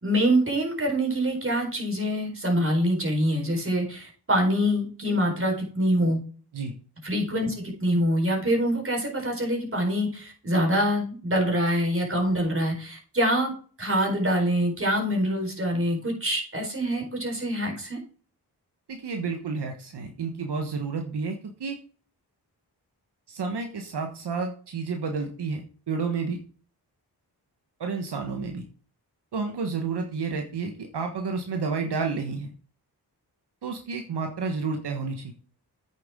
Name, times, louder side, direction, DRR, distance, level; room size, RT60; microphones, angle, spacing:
voice 1, 0.0-6.2 7.0-13.5 13.8-18.0, equal, 30° right, 1 dB, 4.3 m, -25 dB
voice 2, 18.9-21.8 23.3-25.6 25.9-26.4 27.8-28.6 29.3-32.5 33.6-35.3, right 4 dB, 75° right, 4 dB, 1.3 m, -30 dB
8.9 x 6.8 x 3.7 m, 0.41 s
cardioid pair, 65°, 41 cm